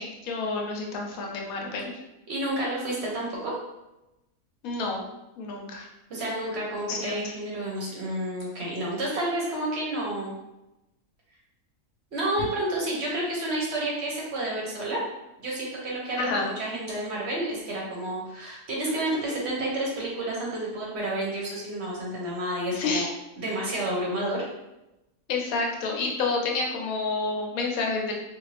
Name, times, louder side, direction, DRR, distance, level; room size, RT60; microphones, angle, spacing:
voice 1, 0.0-1.9 4.6-5.0 5.4-5.9 6.9-7.2 16.2-16.5 22.7-23.1 25.3-28.1, left 3 dB, 85° left, 0 dB, 1.1 m, -29 dB
voice 2, 2.3-3.5 6.1-10.3 12.1-15.0 15.4-23.1 23.4-24.4, right 1 dB, 55° right, -3 dB, 0.9 m, -30 dB
2.5 x 2.4 x 3.1 m, 0.94 s
omnidirectional pair, 1.5 m